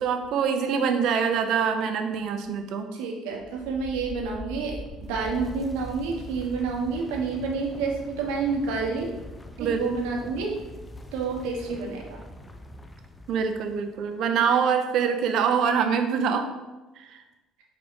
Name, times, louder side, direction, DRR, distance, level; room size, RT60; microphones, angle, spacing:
voice 1, 0.0-2.9 9.6-9.8 13.3-16.5 17.0-17.2, right 6 dB, 65° right, 7 dB, 0.7 m, -24 dB
voice 2, 2.9-4.7 5.0-9.1 9.6-10.6 11.1-12.2, right 4 dB, 90° right, -1 dB, 1.2 m, -29 dB
sound 1, 3.3-14.1, left 1 dB, 15° left, 0.5 m, -42 dB
5.0 x 4.7 x 4.0 m, 1.1 s
supercardioid pair, 95°, 0 cm